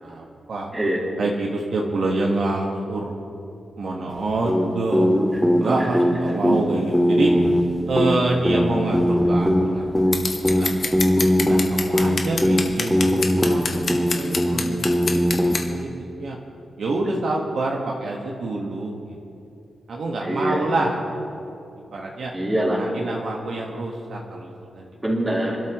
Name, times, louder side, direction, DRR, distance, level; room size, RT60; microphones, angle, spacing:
voice 1, 0.0-0.7 1.2-3.1 3.8-5.1 5.6-7.3 7.9-10.0 10.4-10.7 11.5-13.6 14.2-15.1 15.5-16.4 16.8-19.2 19.9-21.0 21.9-22.3 22.8-24.9, right 2 dB, 70° right, -2 dB, 1.6 m, -26 dB
sound 1, 4.4-15.8, equal, 5° left, 0.8 m, -21 dB
voice 2, 5.3-5.9 11.0-11.3 20.2-20.8 22.3-22.8 25.0-25.6, right 1 dB, 15° right, -5 dB, 3.9 m, -25 dB
Scissors, 10.1-15.6, left 4 dB, 50° left, 1.2 m, -27 dB
27.0 x 12.5 x 3.2 m, 2.6 s
wide cardioid pair, 135°, 0 cm